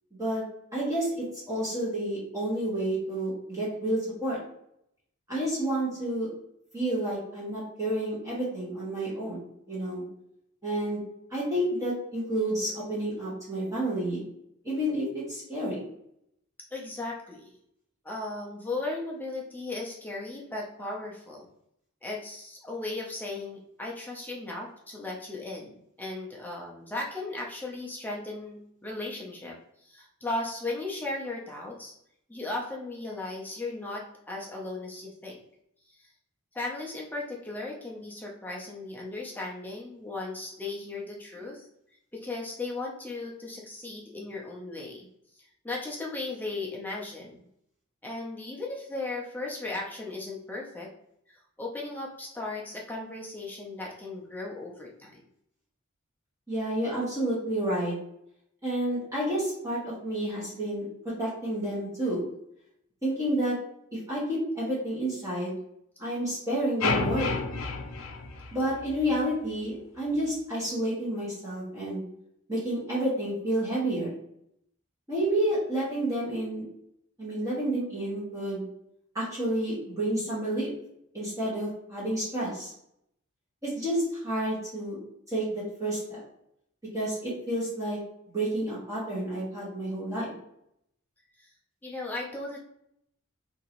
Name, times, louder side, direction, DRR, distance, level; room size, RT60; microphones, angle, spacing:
voice 1, 0.7-4.4 5.3-6.3 6.7-9.4 9.7-10.0 10.6-11.0 11.3-14.2 14.6-15.8 56.5-57.9 58.6-62.2 63.0-63.5 63.9-65.6 66.0-67.4 68.5-72.0 72.5-74.1 75.1-76.6 77.2-78.6 79.1-80.7 81.1-82.7 83.6-85.0 85.3-86.2 86.9-88.0 88.3-90.3, right 1 dB, 15° right, -9 dB, 1.1 m, -30 dB
voice 2, 16.7-17.6 18.0-21.5 22.0-31.9 32.3-35.4 36.0-36.1 36.5-41.7 42.1-45.1 45.6-47.4 48.0-50.9 51.6-55.2 91.8-92.6, left 2 dB, 10° left, -2 dB, 0.4 m, -36 dB
sound 1, 66.8-69.1, left 4 dB, 75° left, 0.4 m, -30 dB
2.8 x 2.5 x 2.9 m, 0.75 s
head